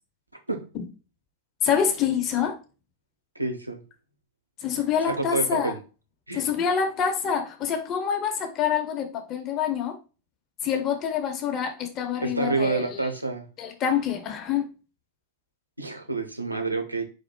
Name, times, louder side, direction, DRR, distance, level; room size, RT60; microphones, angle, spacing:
voice 1, 1.6-2.6 4.6-5.7 6.3-10.0 10.6-13.1 13.6-14.7, left 7 dB, 35° left, 5 dB, 0.9 m, -26 dB
voice 2, 3.3-3.8 5.1-5.8 6.3-6.5 12.2-13.5 15.8-17.0, right 3 dB, 85° right, 3 dB, 0.9 m, -28 dB
4.6 x 4.6 x 2.3 m, 0.33 s
figure-of-eight pair, 90°, 0 cm